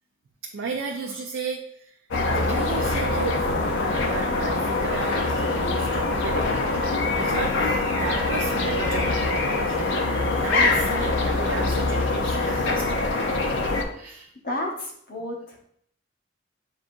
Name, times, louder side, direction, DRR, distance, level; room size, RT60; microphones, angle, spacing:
voice 1, 0.4-1.9 2.3-6.5 7.1-12.9 13.9-14.3, right 4 dB, 90° right, 1 dB, 0.4 m, -34 dB
sound 1, 2.1-13.8, left 2 dB, 70° left, 0.5 m, -24 dB
voice 2, 14.4-15.6, left 1 dB, 45° left, -1 dB, 0.9 m, -31 dB
6.1 x 2.6 x 2.5 m, 0.69 s
head